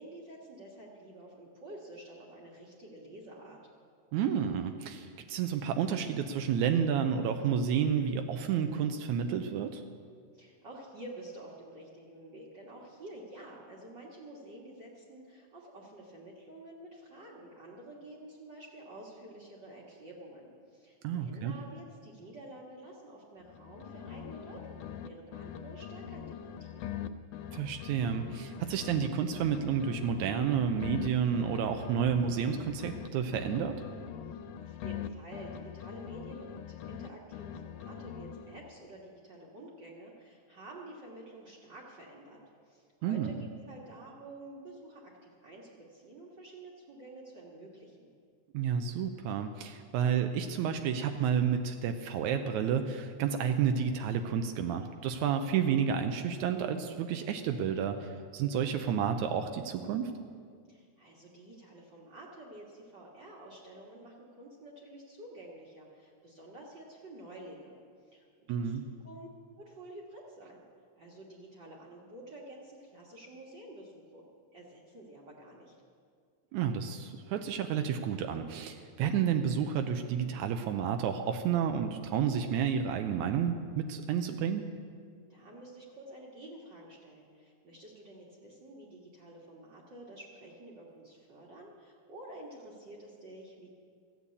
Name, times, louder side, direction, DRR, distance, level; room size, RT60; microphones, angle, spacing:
voice 1, 0.0-3.6 10.3-27.0 34.3-48.1 60.7-67.8 68.0-69.3 69.6-70.6 71.0-74.3 74.5-75.8 85.3-93.7, right 1 dB, 45° right, -4 dB, 1.9 m, -50 dB
voice 2, 4.1-9.8 21.0-21.5 27.5-33.8 43.0-43.3 48.5-60.1 68.5-68.9 76.5-84.7, right 7 dB, 85° right, 6 dB, 2.0 m, -30 dB
sound 1, 23.4-25.1 25.3-29.1 29.3-33.1 33.3-37.1 37.3-38.7, left 9 dB, 90° left, 2.0 m, -43 dB
14.0 x 7.5 x 8.5 m, 2.1 s
omnidirectional pair, 3.4 m